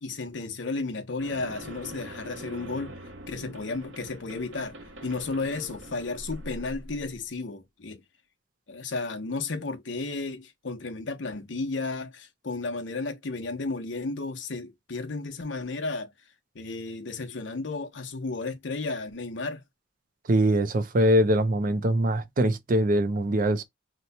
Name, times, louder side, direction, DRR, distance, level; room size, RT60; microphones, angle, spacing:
voice 1, 0.0-3.0 3.3-4.8 5.0-8.0 8.7-16.1 16.5-19.6, left 3 dB, 75° left, 0.8 m, -33 dB
sound 1, 1.2-7.3, equal, 85° right, 1.1 m, -43 dB
voice 2, 20.3-23.6, right 1 dB, 50° right, 0.5 m, -23 dB
2.9 x 2.2 x 3.9 m
head